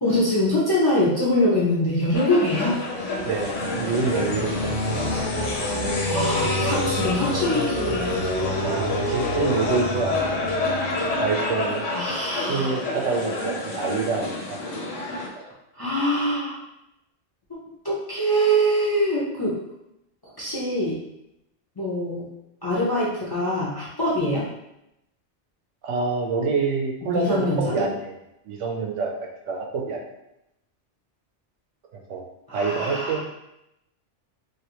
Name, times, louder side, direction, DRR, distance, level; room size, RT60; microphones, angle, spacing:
voice 1, 0.0-2.8 6.0-8.1 11.9-12.8 15.7-16.6 17.8-19.6 20.4-21.0 21.8-22.2 22.6-24.5 27.1-27.9 32.5-33.2, equal, 25° left, -6 dB, 0.5 m, -23 dB
sound 1, 2.1-15.3, left 2 dB, 85° left, 1.0 m, -27 dB
voice 2, 3.2-5.1 6.4-6.6 8.6-10.5 11.2-11.8 12.4-14.3 15.3-15.5 25.8-28.1 28.5-30.0 31.9-32.3 32.5-33.2, right 4 dB, 85° right, 2 dB, 0.9 m, -27 dB
3.3 x 2.4 x 2.9 m, 0.84 s
omnidirectional pair, 1.2 m